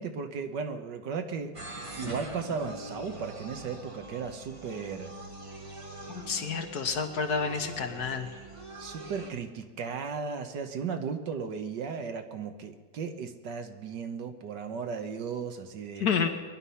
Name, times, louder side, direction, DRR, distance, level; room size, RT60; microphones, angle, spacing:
voice 1, 0.0-1.5 2.0-5.1 8.8-16.1, right 5 dB, 70° right, 6 dB, 1.7 m, -35 dB
sound 1, 1.5-9.3, right 2 dB, 20° right, 1.3 m, -43 dB
voice 2, 6.1-8.3 16.0-16.3, left 6 dB, 60° left, 6 dB, 1.6 m, -29 dB
21.5 x 11.0 x 5.6 m, 1.5 s
omnidirectional pair, 2.0 m